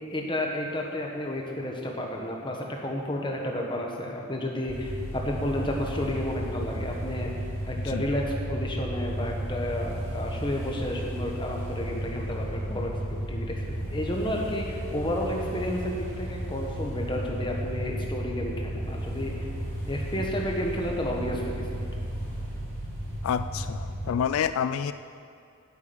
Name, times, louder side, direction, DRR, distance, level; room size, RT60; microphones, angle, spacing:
voice 1, 0.1-7.3 7.6-19.5 19.9-21.7, left 1 dB, 20° left, 0 dB, 1.4 m, -31 dB
sound 1, 4.7-24.1, equal, 50° right, 3.6 m, -33 dB
voice 2, 23.2-24.9, left 8 dB, 80° left, 12 dB, 0.3 m, -28 dB
8.6 x 8.4 x 8.8 m, 2.4 s
head